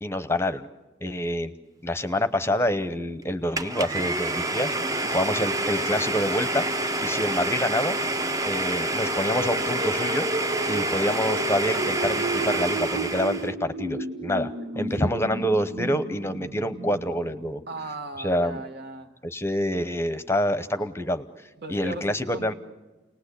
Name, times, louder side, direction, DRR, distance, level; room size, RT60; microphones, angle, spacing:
voice 1, 0.0-0.7 1.0-1.5 1.8-6.7 7.0-8.0 8.4-10.3 10.7-17.6 18.2-18.6 19.2-21.2 21.7-22.5, equal, 15° left, 11 dB, 0.9 m, -27 dB
Domestic sounds home sounds, 3.6-13.5, right 1 dB, 20° right, 0.8 m, -27 dB
voice 2, 4.8-5.1 15.0-15.1 17.7-19.2 21.6-22.5, right 2 dB, 60° right, 7 dB, 1.7 m, -38 dB
sound 1, 8.9-17.9, right 2 dB, 80° right, 1.7 m, -34 dB
30.0 x 19.5 x 8.4 m, 1.2 s
head